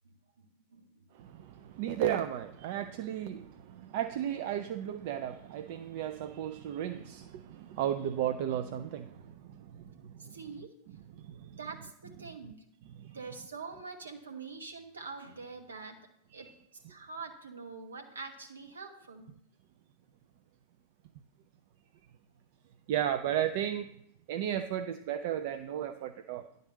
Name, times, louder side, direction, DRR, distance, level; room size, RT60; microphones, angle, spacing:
voice 1, 0.0-0.5 0.7-1.0 10.2-10.7 11.6-12.6 13.1-16.0 16.3-16.5 16.9-19.3, right 4 dB, 70° right, 4 dB, 1.2 m, -45 dB
voice 2, 1.2-10.3 11.2-11.6 13.0-13.2 16.4-16.5 22.9-23.9 24.3-26.5, right 10 dB, 50° right, 8 dB, 0.4 m, -34 dB
10.5 x 3.9 x 6.4 m, 0.76 s
figure-of-eight pair, 90°, 0 cm